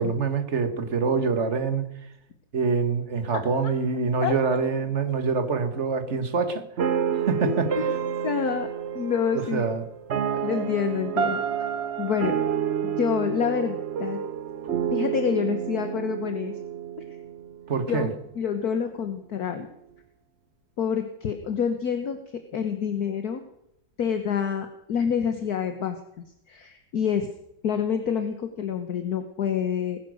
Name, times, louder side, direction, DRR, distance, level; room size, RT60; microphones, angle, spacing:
voice 1, 0.0-1.8 2.5-6.6 7.2-7.7 9.3-9.8 17.7-18.1, right 5 dB, 40° right, 9 dB, 1.7 m, -25 dB
sound 1, 6.8-17.9, right 8 dB, 55° right, 0.7 m, -29 dB
voice 2, 7.4-8.0 8.2-8.7 8.9-9.7 10.4-11.6 12.0-12.4 12.8-14.2 14.9-16.5 17.9-19.7 20.8-22.2 22.5-23.4 24.0-26.0 26.5-27.3 27.6-30.0, left 7 dB, 55° left, 7 dB, 1.6 m, -27 dB
20.0 x 10.5 x 6.4 m, 0.79 s
omnidirectional pair, 2.1 m